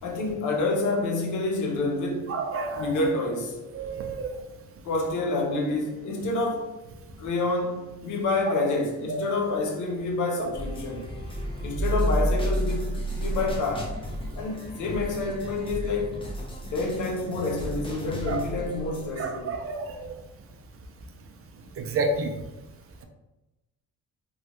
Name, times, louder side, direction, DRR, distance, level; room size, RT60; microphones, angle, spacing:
voice 1, 0.0-2.3 2.8-3.6 4.8-6.7 7.2-11.1 11.6-14.0 14.4-16.2 16.7-19.5, left 2 dB, 75° left, 0.8 m, -28 dB
voice 2, 2.3-3.1 3.7-4.3 8.5-8.6 9.1-9.6 10.4-10.5 18.3-18.4 19.2-20.1 21.8-22.3, right 3 dB, 50° right, 0.5 m, -30 dB
sound 1, 10.5-19.1, equal, 15° left, 0.7 m, -31 dB
3.1 x 2.3 x 2.9 m
cardioid pair, 90°, 30 cm